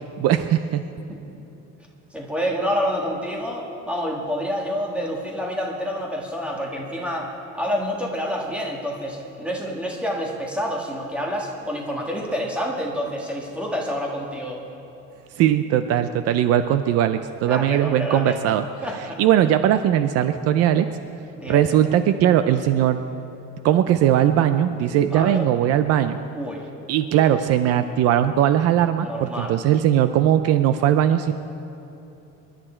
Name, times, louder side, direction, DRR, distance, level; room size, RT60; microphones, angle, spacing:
voice 1, 0.2-0.9 15.4-18.6 19.2-20.9 21.5-23.0 23.6-26.2 26.9-31.3, right 11 dB, 55° right, 10 dB, 0.5 m, -19 dB
voice 2, 2.1-14.6 17.5-18.4 18.8-19.2 21.3-21.9 25.1-25.5 26.3-26.7 29.0-29.6, equal, 5° right, -1 dB, 1.7 m, -28 dB
25.5 x 11.5 x 4.4 m, 2.9 s
cardioid pair, 180°, 29 cm